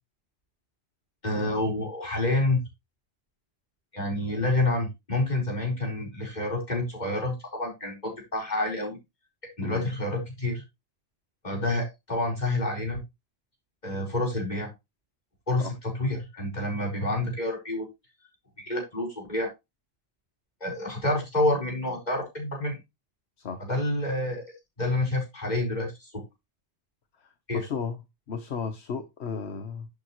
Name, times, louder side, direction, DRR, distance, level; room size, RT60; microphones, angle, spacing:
voice 1, 1.2-2.6 3.9-9.0 9.6-10.6 11.4-13.0 13.8-14.7 15.5-17.9 18.7-19.5 20.6-22.8 23.6-24.4 24.8-26.2 27.5-27.7, left 2 dB, 40° left, 4.4 m, -28 dB
voice 2, 27.5-28.0 28.3-29.9, left 5 dB, 90° left, 1.3 m, -34 dB
10.5 x 7.2 x 3.1 m
omnidirectional pair, 1.1 m